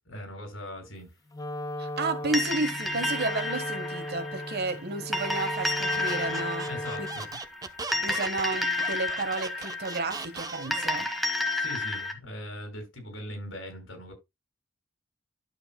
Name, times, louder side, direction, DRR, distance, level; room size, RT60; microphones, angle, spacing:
voice 1, 0.1-1.1 6.7-7.3 11.6-14.1, left 1 dB, 70° left, 7.0 m, -40 dB
Wind instrument woodwind instrument, 1.3-7.3, left 1 dB, 20° left, 0.5 m, -37 dB
voice 2, 1.8-6.7 7.0-7.1 8.0-11.1, right 3 dB, 55° right, 1.4 m, -32 dB
sound 1, 2.3-12.1, left 2 dB, ahead, 1.8 m, -31 dB
Squeak, 5.9-10.9, right 3 dB, 20° right, 0.7 m, -39 dB
12.0 x 7.9 x 2.2 m
head